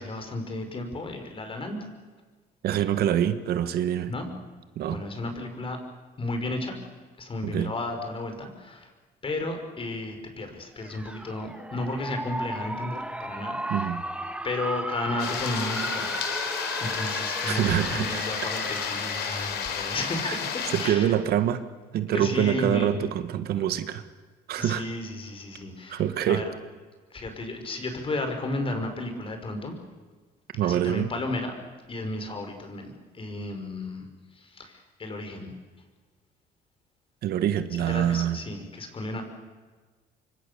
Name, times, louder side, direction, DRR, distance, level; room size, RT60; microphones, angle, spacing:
voice 1, 0.0-1.8 4.1-4.3 4.9-5.8 6.2-6.8 7.2-8.9 9.2-13.9 14.4-16.5 16.8-21.1 22.1-23.1 24.6-26.5 27.1-29.7 30.6-31.6 31.9-34.0 34.3-35.5 37.9-39.2, left 2 dB, 30° left, 6 dB, 5.4 m, -33 dB
voice 2, 2.6-4.1 4.8-5.0 7.4-7.7 13.7-14.0 17.5-18.2 20.2-20.4 20.7-21.6 21.9-24.0 24.5-24.8 25.9-26.4 30.5-31.1 37.2-38.4, right 10 dB, 70° right, 11 dB, 1.5 m, -25 dB
sound 1, 10.8-19.6, right 1 dB, 5° right, 1.5 m, -35 dB
sound 2, 15.2-20.9, left 7 dB, 75° left, 4.0 m, -31 dB
26.5 x 24.0 x 7.0 m, 1.4 s
cardioid pair, 110°, 17 cm